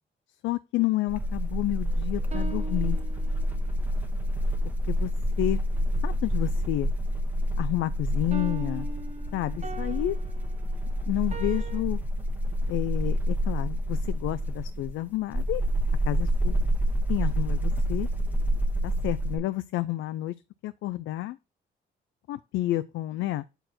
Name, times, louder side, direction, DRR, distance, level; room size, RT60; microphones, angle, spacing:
voice 1, 0.4-3.0 4.9-5.1 5.4-5.6 6.0-6.9 7.6-8.9 9.3-10.2 11.1-12.0 12.7-15.6 16.1-16.6 17.1-18.1 18.8-20.4 20.6-21.4 22.3-23.4, left 16 dB, 85° left, 0.4 m, -30 dB
sound 1, 1.1-19.4, equal, 10° right, 1.3 m, -28 dB
sound 2, 1.9-3.7 8.3-11.8, right 3 dB, 35° right, 0.9 m, -41 dB
7.9 x 4.5 x 4.3 m
cardioid pair, 90°, 20 cm